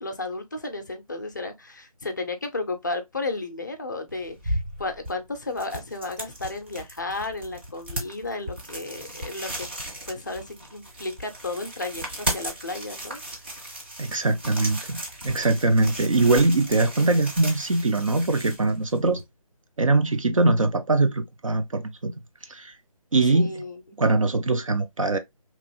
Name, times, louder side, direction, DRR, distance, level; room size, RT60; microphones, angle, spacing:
voice 1, 0.0-9.7 10.1-13.2 23.2-23.8, left 2 dB, 30° left, 0.4 m, -33 dB
sound 1, 4.1-19.2, right 1 dB, 20° right, 0.6 m, -36 dB
voice 2, 14.0-19.2 19.8-22.1 22.5-22.7 23.1-23.6 24.0-25.2, right 2 dB, 60° right, 0.5 m, -22 dB
2.9 x 2.5 x 2.7 m
figure-of-eight pair, 150°, 19 cm